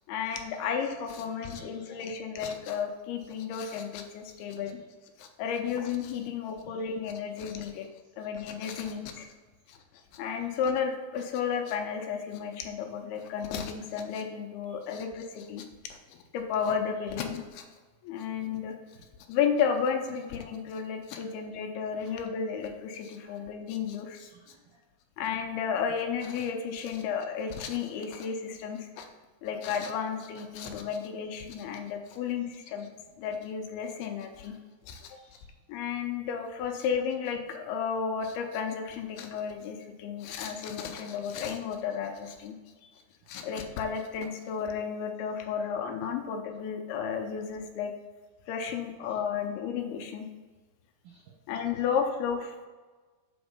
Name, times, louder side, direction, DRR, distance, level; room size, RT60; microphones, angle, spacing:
voice 1, 0.1-4.8 5.2-7.9 8.2-9.3 9.7-9.8 10.1-15.6 16.1-17.6 18.0-18.7 19.3-24.3 25.2-29.1 29.4-32.9 33.2-34.5 34.9-35.2 35.7-42.5 43.3-47.9 48.5-50.3 51.5-52.7, left 7 dB, 85° left, 4 dB, 2.7 m, -33 dB
voice 2, 1.2-2.1 4.4-4.9 6.6-6.8 7.7-7.8 14.7-14.8 18.3-18.5 19.0-19.1 22.0-22.2 23.2-23.4 24.0-24.8 34.3-34.6 35.2-35.5 48.6-48.8 49.1-49.2 51.0-51.4, right 5 dB, 80° right, -1 dB, 1.8 m, -58 dB
7.9 x 4.4 x 5.2 m, 1.3 s
omnidirectional pair, 4.5 m